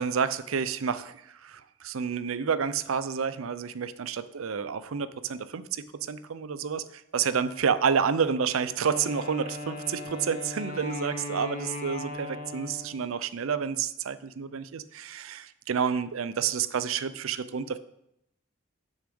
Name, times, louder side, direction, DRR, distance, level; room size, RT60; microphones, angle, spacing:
voice 1, 0.0-17.8, right 6 dB, 90° right, 14 dB, 0.5 m, -29 dB
Wind instrument woodwind instrument, 8.8-13.1, left 2 dB, 35° left, 1.1 m, -38 dB
6.9 x 6.3 x 5.3 m, 0.79 s
head